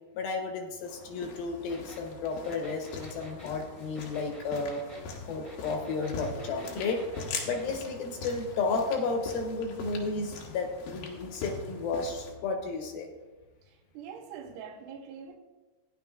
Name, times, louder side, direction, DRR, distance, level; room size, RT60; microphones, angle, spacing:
voice 1, 0.1-4.8 5.3-7.1 7.4-13.1, left 4 dB, 70° left, 2.7 m, -32 dB
sound 1, 0.8-12.3, left 4 dB, 85° left, 3.4 m, -42 dB
sound 2, 1.7-7.7, right 1 dB, 15° left, 1.2 m, -49 dB
voice 2, 13.7-15.4, right 7 dB, 80° right, 2.8 m, -44 dB
15.5 x 10.0 x 2.4 m
omnidirectional pair, 4.7 m